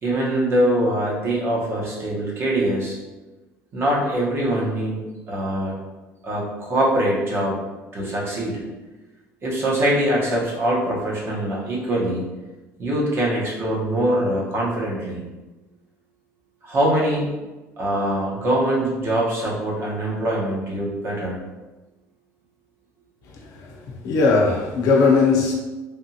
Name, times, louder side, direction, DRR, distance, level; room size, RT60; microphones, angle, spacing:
voice 1, 0.0-3.0 3.7-5.7 6.2-7.5 7.9-8.6 9.4-12.2 12.8-15.2 16.6-17.3 17.8-21.4, right 1 dB, 40° right, -4 dB, 1.1 m, -23 dB
voice 2, 23.4-25.5, left 4 dB, 70° left, -1 dB, 0.8 m, -19 dB
3.5 x 2.4 x 2.8 m, 1.2 s
cardioid pair, 120°, 6 cm